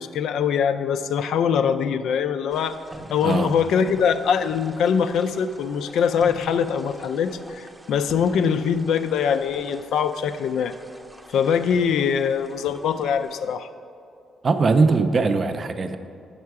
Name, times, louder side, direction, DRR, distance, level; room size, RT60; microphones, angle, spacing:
voice 1, 0.0-2.8 3.1-10.7 11.3-13.7, left 7 dB, 80° left, 10 dB, 0.4 m, -23 dB
sound 1, 2.5-13.6, right 1 dB, 10° right, 0.7 m, -45 dB
voice 2, 14.4-16.0, right 4 dB, 40° right, 9 dB, 0.5 m, -20 dB
8.6 x 6.5 x 4.7 m, 2.5 s
cardioid pair, 110°, 0 cm